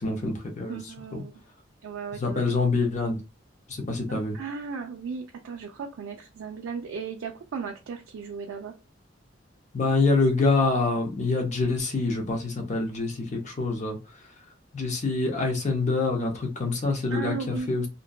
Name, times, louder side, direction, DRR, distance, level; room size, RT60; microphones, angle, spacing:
voice 1, 0.0-0.8 1.1-1.2 2.2-3.2 3.7-4.4 9.7-14.0 14.7-17.8, left 3 dB, 35° left, 0.6 m, -26 dB
voice 2, 0.7-1.3 1.8-2.4 4.1-8.7 17.1-17.9, right 5 dB, 90° right, 0.3 m, -36 dB
2.6 x 2.1 x 2.2 m
head